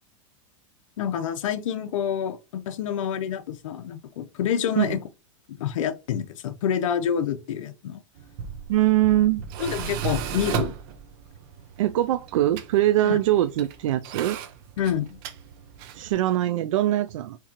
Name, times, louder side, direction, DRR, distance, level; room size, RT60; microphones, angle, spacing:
voice 1, 1.0-5.0 5.6-8.0 9.6-10.7 13.0-13.2 14.8-15.2, left 8 dB, 80° left, 0.7 m, -27 dB
Tools, 8.2-16.1, right 7 dB, 45° right, 0.6 m, -35 dB
voice 2, 8.7-9.4 11.8-14.4 15.9-17.4, right 14 dB, 80° right, 0.4 m, -22 dB
4.5 x 3.7 x 2.9 m
supercardioid pair, 160°, 16 cm